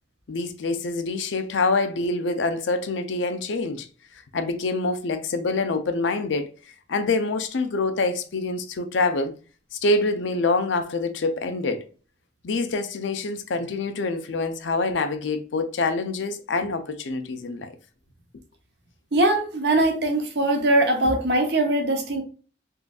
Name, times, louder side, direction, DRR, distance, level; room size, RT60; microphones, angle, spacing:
voice 1, 0.3-3.9 4.3-6.5 6.9-9.3 9.7-11.8 12.4-17.8, left 3 dB, 85° left, 0.5 m, -26 dB
voice 2, 19.1-22.2, right 1 dB, 65° right, 0.8 m, -21 dB
3.8 x 2.5 x 2.3 m
head